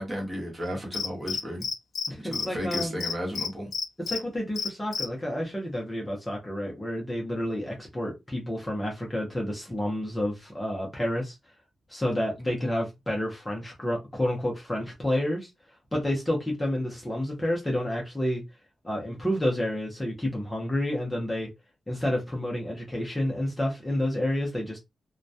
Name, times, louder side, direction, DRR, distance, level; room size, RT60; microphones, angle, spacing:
voice 1, 0.0-1.7 2.2-3.7, equal, 20° right, 1.0 m, -33 dB
Cricket, 0.9-2.1 2.3-2.5 2.7-4.2 4.6-5.0, left 5 dB, 80° left, 0.4 m, -30 dB
voice 2, 2.1-3.0 4.1-11.4 11.9-15.5 15.9-18.4 18.8-21.5 21.9-24.8, left 1 dB, 15° left, 0.6 m, -29 dB
2.2 x 2.1 x 2.6 m
wide cardioid pair, 130°, 0 cm